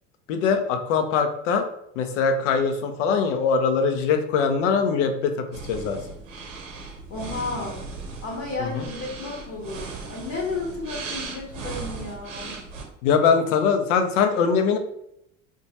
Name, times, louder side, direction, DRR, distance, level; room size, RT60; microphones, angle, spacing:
voice 1, 0.3-1.7 2.0-6.0 8.6-8.9 13.0-14.8, left 6 dB, 70° left, 7 dB, 0.6 m, -22 dB
sound 1, 5.5-12.8, right 4 dB, 85° right, 0.8 m, -37 dB
voice 2, 7.1-7.8 8.2-12.6, left 3 dB, 50° left, -2 dB, 0.9 m, -32 dB
2.8 x 2.3 x 2.8 m, 0.78 s
hypercardioid pair, 75°, 38 cm